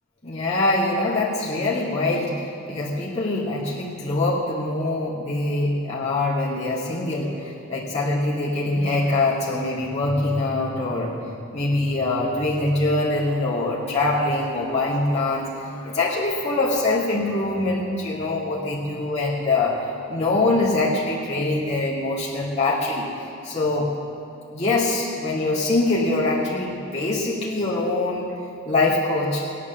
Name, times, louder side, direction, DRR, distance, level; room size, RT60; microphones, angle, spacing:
voice 1, 0.2-11.3 11.5-19.8 20.1-23.1 23.4-23.9 24.5-28.3 28.6-29.4, left 2 dB, 30° left, -8 dB, 2.3 m, -23 dB
17.0 x 10.0 x 7.2 m, 2.6 s
head